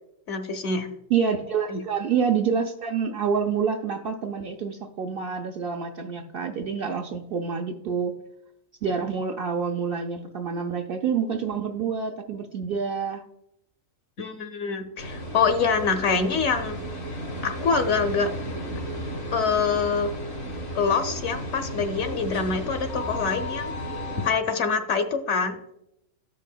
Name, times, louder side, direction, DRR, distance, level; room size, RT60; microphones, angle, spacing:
voice 1, 0.3-0.9 1.7-1.8 14.2-16.8 17.4-18.3 19.3-20.2 20.7-23.7 24.2-25.6, left 5 dB, 65° left, 7 dB, 0.9 m, -25 dB
voice 2, 1.1-8.1 8.8-13.2, right 6 dB, 60° right, 4 dB, 0.6 m, -27 dB
sound 1, 15.0-24.3, equal, 90° left, 2.3 m, -34 dB
13.5 x 5.4 x 2.2 m, 0.82 s
omnidirectional pair, 1.3 m